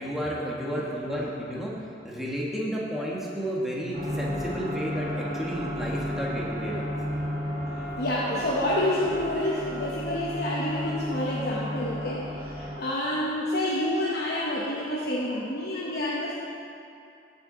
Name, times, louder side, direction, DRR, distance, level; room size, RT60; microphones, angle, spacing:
voice 1, 0.0-1.7 2.0-6.9, equal, ahead, -5 dB, 1.3 m, -32 dB
sound 1, 3.9-12.8, equal, 40° right, 1.1 m, -33 dB
voice 2, 8.0-16.3, left 1 dB, 55° left, -5 dB, 0.9 m, -28 dB
14.5 x 5.8 x 3.9 m, 2.6 s
head